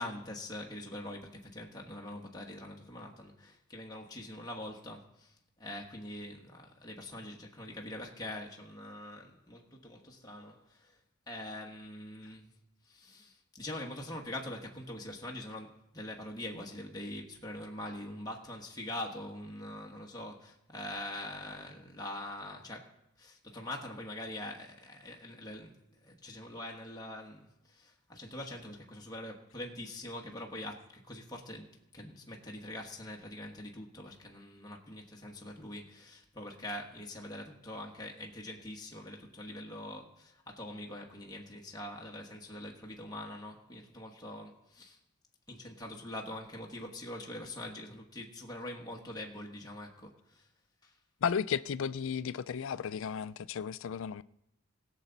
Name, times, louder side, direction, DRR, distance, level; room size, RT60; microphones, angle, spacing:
voice 1, 0.0-11.0 11.3-12.5 12.9-22.9 23.2-45.0 45.5-50.5 50.8-50.9, left 1 dB, 20° left, 1.3 m, -44 dB
voice 2, 51.2-54.2, left 7 dB, 65° left, 0.4 m, -34 dB
20.5 x 7.0 x 4.0 m
head